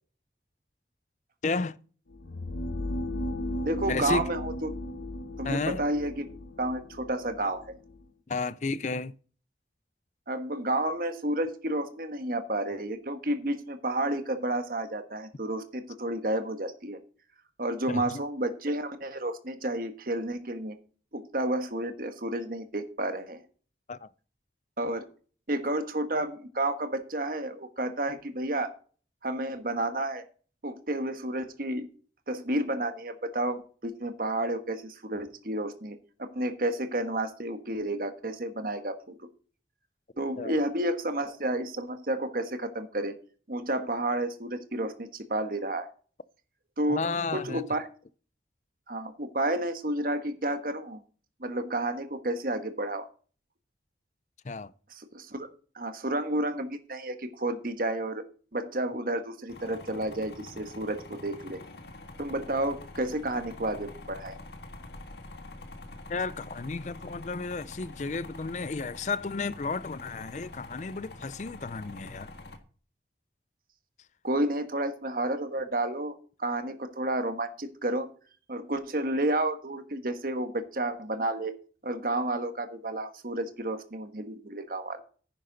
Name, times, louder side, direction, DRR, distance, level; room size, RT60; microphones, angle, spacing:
voice 1, 1.4-1.8 3.9-4.3 5.4-5.8 8.3-9.1 17.9-18.2 23.9-24.1 40.4-40.5 46.9-47.6 54.4-54.7 66.1-72.3, left 4 dB, 40° left, 0.5 m, -32 dB
sound 1, 2.1-8.0, left 1 dB, 90° left, 1.0 m, -36 dB
voice 2, 3.6-4.7 5.4-6.2 6.6-7.6 10.3-17.0 17.6-20.8 21.1-23.4 24.8-25.1 25.5-28.7 29.2-30.2 30.6-31.9 32.3-39.1 40.2-43.1 43.5-45.9 46.8-47.0 47.3-47.9 48.9-51.0 51.4-53.1 54.9-55.4 55.7-58.2 58.5-61.6 62.2-64.4 74.2-78.1 78.5-81.5 81.8-85.0, right 1 dB, 55° right, 1.4 m, -31 dB
sound 2, 59.5-72.6, left 2 dB, 70° left, 1.7 m, -46 dB
10.0 x 10.0 x 4.0 m
head